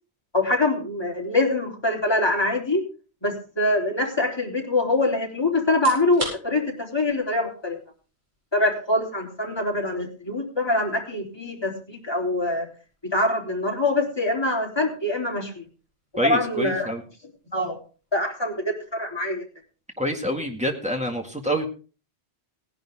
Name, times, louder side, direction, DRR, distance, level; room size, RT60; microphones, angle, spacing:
voice 1, 0.3-2.8 3.2-7.8 8.5-12.7 13.0-15.6 16.2-16.9 17.5-17.8 18.1-19.4, left 2 dB, 20° left, -1 dB, 3.7 m, -24 dB
sound 1, 5.7-20.5, right 1 dB, 45° right, 6.5 m, -46 dB
voice 2, 16.2-17.0 20.0-21.7, equal, 5° right, 2 dB, 2.0 m, -26 dB
17.5 x 10.5 x 3.7 m, 0.36 s
omnidirectional pair, 1.1 m